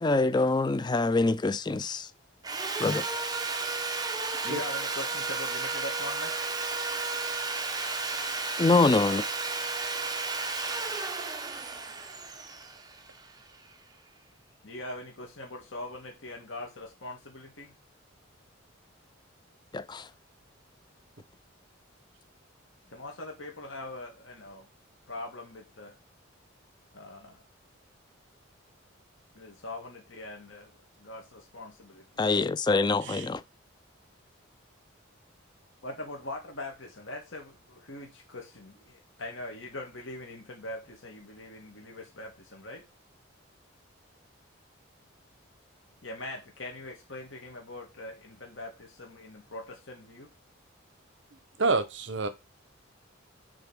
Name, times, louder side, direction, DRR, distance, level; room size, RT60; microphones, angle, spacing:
voice 1, 0.0-2.1 2.8-3.0 8.6-9.2 19.7-20.1 32.2-33.4, left 3 dB, 20° left, 0.4 m, -25 dB
Sawing, 2.4-13.5, right 3 dB, 20° right, 1.0 m, -33 dB
voice 2, 4.4-6.5 14.6-17.7 22.9-24.7 25.1-25.9 26.9-27.4 29.4-32.1 35.8-42.9 46.0-50.3, left 2 dB, 65° left, 1.9 m, -42 dB
voice 3, 51.6-52.3, right 3 dB, 60° right, 0.9 m, -28 dB
6.8 x 3.8 x 6.1 m
head